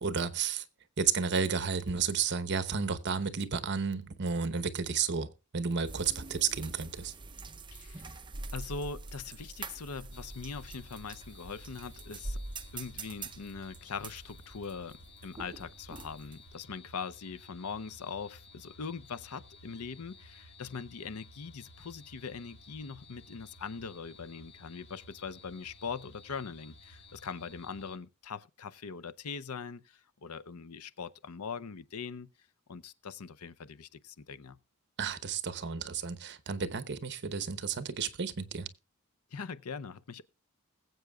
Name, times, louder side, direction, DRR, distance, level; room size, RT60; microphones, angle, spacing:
voice 1, 0.0-0.6 1.0-7.1 35.0-38.7, right 6 dB, 55° right, 1.0 m, -32 dB
sound 1, 5.9-16.5, right 3 dB, 20° right, 0.7 m, -45 dB
voice 2, 7.7-8.2 8.5-12.4 12.7-15.0 15.2-32.3 32.7-34.6 39.3-40.2, left 5 dB, 80° left, 0.7 m, -41 dB
sound 2, 10.1-28.0, left 2 dB, 55° left, 1.4 m, -55 dB
21.0 x 7.9 x 2.3 m
head